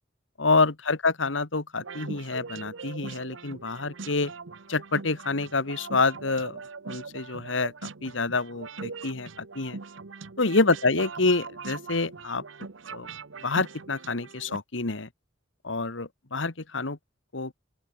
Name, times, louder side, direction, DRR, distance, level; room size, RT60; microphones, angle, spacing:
voice 1, 0.4-4.3 4.7-9.8 10.4-12.4 12.9-13.1 13.4-15.1 15.6-17.0 17.3-17.5, left 3 dB, 80° left, 1.8 m, -27 dB
sound 1, 1.8-14.6, right 4 dB, 85° right, 1.0 m, -41 dB
open air
head